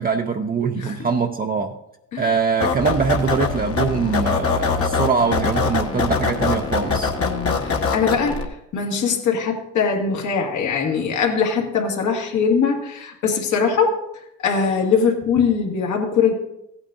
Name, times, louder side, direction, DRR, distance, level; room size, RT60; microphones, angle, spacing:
voice 1, 0.0-1.8 2.2-7.1, right 5 dB, 30° right, 0.6 m, -22 dB
sound 1, 2.6-8.4, left 4 dB, 50° left, 1.3 m, -23 dB
voice 2, 7.2-14.0 14.4-16.3, left 6 dB, 75° left, 2.0 m, -21 dB
15.5 x 8.9 x 2.6 m
cardioid pair, 90°, 30 cm